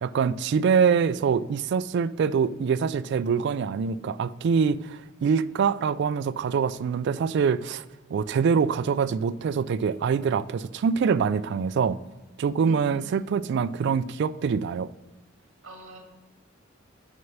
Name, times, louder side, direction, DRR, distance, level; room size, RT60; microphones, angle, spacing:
voice 1, 0.0-7.8 8.1-12.0 12.4-14.9, right 6 dB, 60° right, 0.3 m, -24 dB
voice 2, 12.7-13.2 15.6-16.0, right 2 dB, 75° right, 2.0 m, -45 dB
6.3 x 5.9 x 5.5 m
head